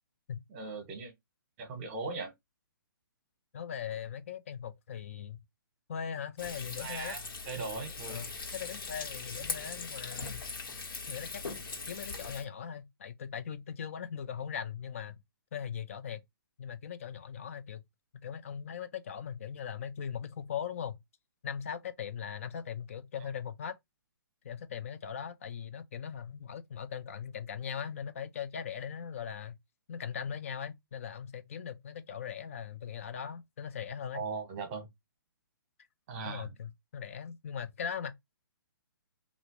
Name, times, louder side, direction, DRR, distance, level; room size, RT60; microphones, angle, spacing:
voice 1, 0.5-1.1 1.6-2.3 6.8-7.2 7.5-8.3 34.1-34.9 36.1-36.5, right 4 dB, 25° right, 1.0 m, -39 dB
voice 2, 3.5-5.4 5.9-7.2 8.1-10.4 11.1-11.4 11.9-15.2 15.5-16.2 16.6-17.8 18.2-21.0 21.4-23.8 24.4-29.6 29.9-34.2 36.2-38.1, left 8 dB, 35° left, 0.3 m, -39 dB
Frying (food), 6.4-12.4, left 4 dB, 70° left, 1.4 m, -40 dB
3.0 x 2.5 x 3.0 m
hypercardioid pair, 165°, 12 cm